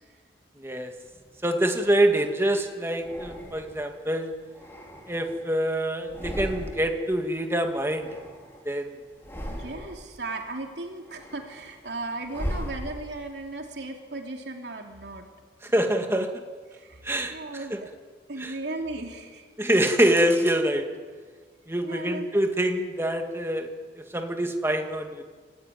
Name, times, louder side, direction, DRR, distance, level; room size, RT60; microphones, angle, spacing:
voice 1, 0.6-0.9 1.4-4.3 5.1-8.1 8.7-9.0 15.6-16.3 17.0-17.3 17.7-17.8 18.4-18.5 19.6-20.8 21.7-23.7 24.1-25.2, right 1 dB, 15° right, 4 dB, 2.2 m, -25 dB
sound 1, 1.1-2.3 3.0-3.9 4.4-5.6 6.0-7.1 7.3-8.7 9.1-10.2 10.6-13.4, equal, 15° left, 4.0 m, -38 dB
voice 2, 9.5-15.3 16.7-17.0 17.3-17.9 18.3-19.5 21.8-22.3, right 2 dB, 75° right, 2 dB, 3.1 m, -36 dB
26.5 x 16.0 x 9.4 m, 1.5 s
head